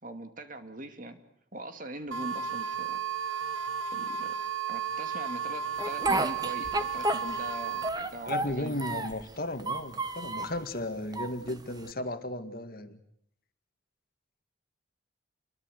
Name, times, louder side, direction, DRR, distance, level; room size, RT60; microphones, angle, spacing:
voice 1, 0.0-1.2 1.5-3.0 3.9-4.4 4.7-8.8, right 1 dB, 45° right, 8 dB, 2.4 m, -41 dB
sound 1, 2.1-7.9, right 7 dB, 85° right, 1.3 m, -33 dB
Speech, 5.8-7.5 7.8-9.2 9.6-10.6 11.1-11.9, right 2 dB, 20° right, 1.6 m, -31 dB
voice 2, 8.3-13.0, left 1 dB, 50° left, 8 dB, 2.0 m, -35 dB
29.0 x 22.5 x 8.2 m, 0.70 s
head